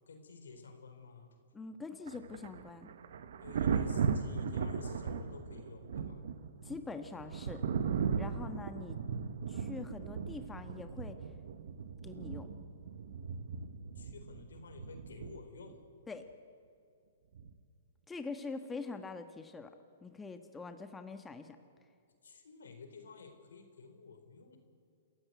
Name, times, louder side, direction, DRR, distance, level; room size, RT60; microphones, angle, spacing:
voice 1, 0.1-1.3 3.4-6.2 14.0-15.8 22.2-24.6, left 4 dB, 80° left, 7 dB, 4.0 m, -52 dB
voice 2, 1.5-2.9 6.6-7.6 8.2-9.0 9.5-11.2 12.0-12.5 16.1-16.3 18.1-19.7 20.0-21.6, left 4 dB, 10° left, 7 dB, 1.4 m, -44 dB
Thunder, 2.1-15.7 17.4-17.6, right 6 dB, 70° right, 1.4 m, -37 dB
27.5 x 15.0 x 9.4 m, 2.3 s
hypercardioid pair, 125°, 0 cm